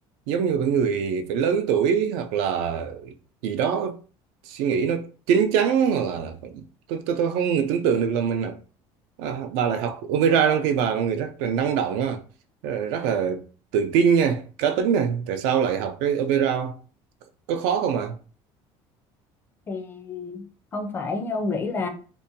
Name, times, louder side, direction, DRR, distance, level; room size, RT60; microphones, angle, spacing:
voice 1, 0.3-3.1 3.4-4.0 4.5-8.6 9.2-12.2 12.6-13.4 13.7-16.8 17.5-18.2, right 7 dB, 80° right, 0.4 m, -23 dB
voice 2, 19.7-21.9, left 3 dB, 20° left, 0.4 m, -30 dB
2.6 x 2.2 x 2.6 m
cardioid pair, 160°, 11 cm